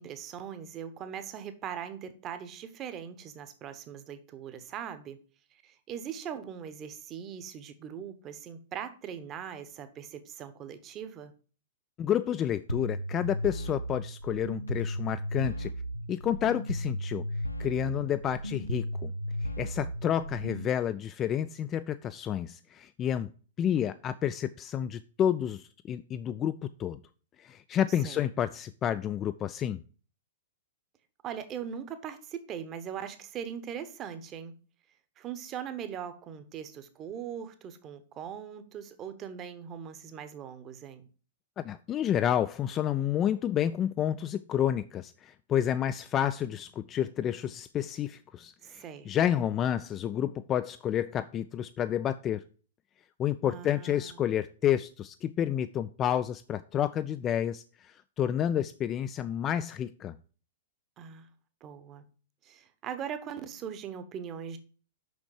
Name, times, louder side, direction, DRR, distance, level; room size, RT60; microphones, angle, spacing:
voice 1, 0.0-5.2 5.6-11.3 20.2-20.3 28.0-28.3 31.2-34.5 35.2-41.1 48.6-49.1 53.4-54.2 61.0-61.3 61.6-62.0 62.4-64.6, right 8 dB, 30° right, 1.0 m, -40 dB
voice 2, 12.0-15.7 16.1-17.3 17.6-19.1 19.6-23.3 23.6-27.0 27.4-29.8 41.6-52.4 53.2-60.2, left 10 dB, 25° left, 0.3 m, -30 dB
sound 1, 12.7-20.7, equal, 90° left, 0.5 m, -35 dB
6.3 x 6.0 x 4.7 m
figure-of-eight pair, 105°, 0 cm